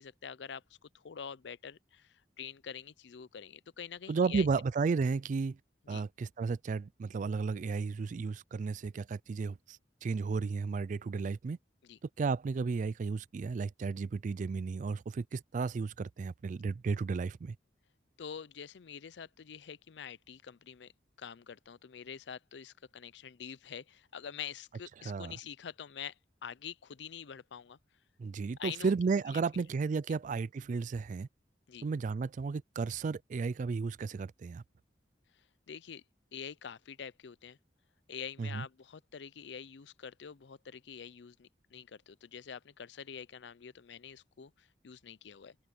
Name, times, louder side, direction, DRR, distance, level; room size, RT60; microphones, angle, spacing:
voice 1, 0.0-4.5 5.9-6.0 11.8-12.0 18.2-20.9 21.2-27.8 28.6-28.9 29.3-29.6 31.7-31.9 35.3-36.0 36.3-37.6 38.1-45.6, left 7 dB, 80° left, 0.5 m, -46 dB
voice 2, 4.1-5.6 5.9-11.6 12.2-17.6 25.0-25.3 28.2-31.3 31.8-34.6 38.4-38.7, right 4 dB, 45° right, 0.3 m, -33 dB
open air
head